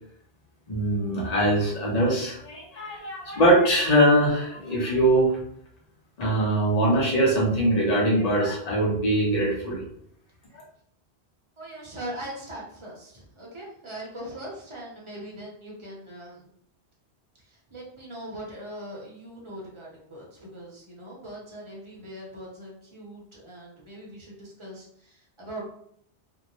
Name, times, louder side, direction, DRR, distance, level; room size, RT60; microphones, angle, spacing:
voice 1, 0.7-5.3 6.2-9.8, right 1 dB, 40° left, -4 dB, 0.9 m, -22 dB
voice 2, 11.6-16.5 17.4-25.7, right 1 dB, 30° right, -5 dB, 0.8 m, -41 dB
2.6 x 2.0 x 3.0 m, 0.68 s
omnidirectional pair, 1.2 m